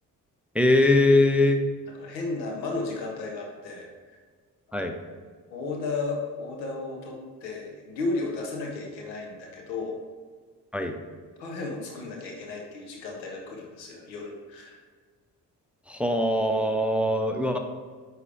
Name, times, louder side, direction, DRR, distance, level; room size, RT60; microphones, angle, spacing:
voice 1, 0.5-1.6 4.7-4.9 10.7-10.9 15.9-17.6, left 1 dB, ahead, 5 dB, 0.6 m, -21 dB
voice 2, 2.0-3.9 5.5-10.0 11.4-14.8, left 3 dB, 85° left, 0 dB, 1.0 m, -34 dB
9.3 x 3.2 x 3.4 m, 1.5 s
hypercardioid pair, 45°, 50 cm